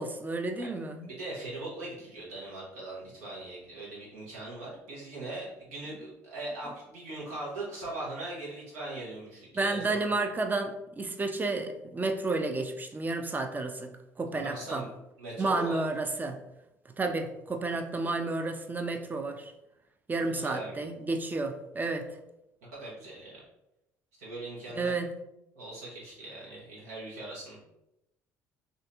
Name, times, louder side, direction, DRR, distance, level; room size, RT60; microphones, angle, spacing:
voice 1, 0.0-1.1 9.5-14.8 15.4-16.4 17.0-19.5 20.1-22.1 24.7-25.1, right 3 dB, 20° right, 5 dB, 0.5 m, -31 dB
voice 2, 1.2-10.1 14.3-14.9 15.2-15.8 20.3-20.8 22.6-23.4 24.2-24.9 25.5-27.6, right 2 dB, 85° right, -5 dB, 1.2 m, -40 dB
2.7 x 2.6 x 3.4 m, 0.87 s
hypercardioid pair, 60°, 8 cm